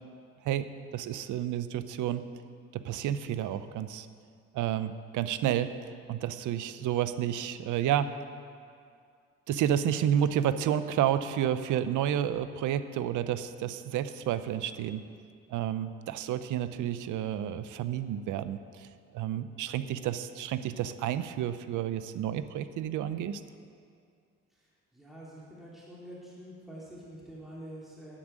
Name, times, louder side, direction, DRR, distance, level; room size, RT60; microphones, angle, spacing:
voice 1, 0.9-2.2 2.7-4.1 4.5-8.1 9.5-15.0 15.5-18.9 19.1-23.4, right 10 dB, 80° right, 12 dB, 0.7 m, -30 dB
voice 2, 19.4-19.7 24.5-24.6 24.9-28.2, right 1 dB, ahead, -7 dB, 3.0 m, -47 dB
10.0 x 7.3 x 9.0 m, 2.3 s
cardioid pair, 90°, 30 cm